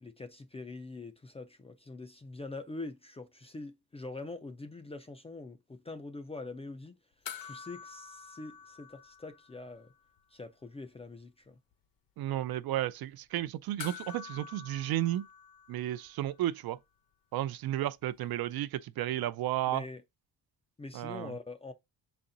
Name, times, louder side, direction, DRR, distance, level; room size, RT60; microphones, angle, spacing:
voice 1, 0.0-6.9 7.4-9.9 10.3-11.6 19.7-20.0 20.8-21.7, left 3 dB, 15° left, 0.4 m, -44 dB
sound 1, 7.2-9.9 10.2-10.3 13.8-16.4 18.5-18.6, left 7 dB, 55° left, 0.9 m, -47 dB
voice 2, 12.2-15.3 15.7-16.8 17.3-19.8 20.9-21.3, right 13 dB, 60° right, 0.5 m, -33 dB
6.1 x 4.3 x 3.8 m
cardioid pair, 170°, 42 cm